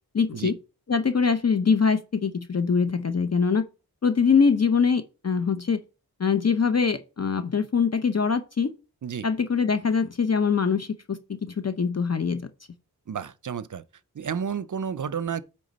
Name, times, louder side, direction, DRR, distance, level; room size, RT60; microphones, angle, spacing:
voice 1, 0.1-0.6 0.9-3.6 4.0-5.8 6.2-8.7 9.2-12.5, left 5 dB, 40° left, 0.6 m, -23 dB
voice 2, 13.1-13.8 14.1-15.4, right 7 dB, 50° right, 0.5 m, -31 dB
9.1 x 3.5 x 5.3 m
wide cardioid pair, 85°, 38 cm